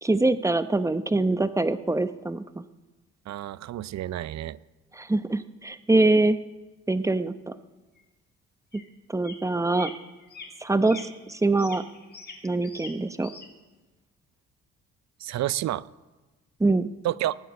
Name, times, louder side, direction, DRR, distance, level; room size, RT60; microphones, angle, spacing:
voice 1, 0.0-2.4 4.9-6.4 6.9-7.5 8.7-8.8 9.1-9.9 10.6-11.8 12.4-13.3 16.6-16.9, right 2 dB, 10° right, 12 dB, 0.8 m, -24 dB
voice 2, 3.3-4.6 15.2-15.8 17.0-17.4, right 13 dB, 65° right, 19 dB, 0.5 m, -29 dB
sound 1, 7.0-7.1 8.0-8.1 8.7-8.9 9.2-9.5 9.8-9.9 10.2-10.5 10.9-11.1 11.6-12.9 13.2-13.5, left 3 dB, 35° left, 2.5 m, -43 dB
19.5 x 9.2 x 7.0 m, 1.2 s
cardioid pair, 90°, 30 cm